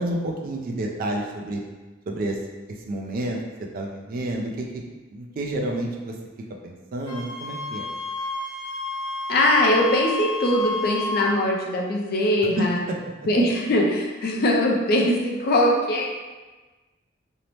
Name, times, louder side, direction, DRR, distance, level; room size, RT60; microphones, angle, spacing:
voice 1, 0.0-1.6 2.1-2.4 2.7-3.4 3.7-4.8 5.1-6.2 6.6-7.9 12.6-13.0, right 1 dB, 45° right, 1 dB, 0.3 m, -29 dB
Wind instrument woodwind instrument, 7.0-11.3, left 3 dB, 65° left, 1.0 m, -30 dB
voice 2, 9.3-12.8 13.3-16.1, left 1 dB, 50° left, -1 dB, 0.4 m, -21 dB
2.7 x 2.0 x 3.0 m, 1.3 s
head